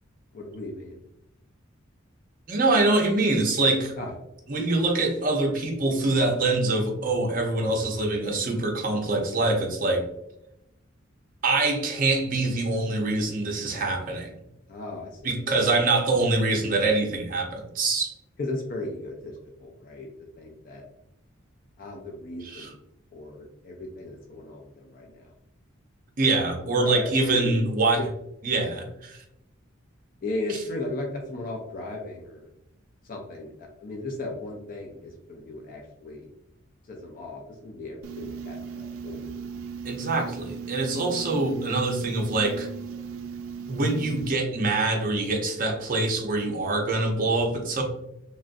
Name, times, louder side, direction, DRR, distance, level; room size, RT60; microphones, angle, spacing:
voice 1, 0.3-1.0 4.0-4.1 8.1-8.2 14.7-15.2 18.4-20.1 20.4-20.8 21.8-22.8 23.1-25.3 26.8-27.6 28.0-28.1 30.2-32.5 33.0-36.3 36.8-39.3 40.7-40.8, left 2 dB, 40° left, 0 dB, 0.4 m, -36 dB
voice 2, 2.5-3.9 4.5-10.1 11.4-14.3 15.2-18.1 22.4-22.7 26.2-28.0 28.4-29.2 39.8-42.7 43.7-47.8, right 2 dB, 40° right, 1 dB, 0.6 m, -24 dB
sound 1, 38.0-44.3, right 6 dB, 85° right, 0.3 m, -37 dB
3.0 x 2.5 x 2.5 m, 0.83 s
head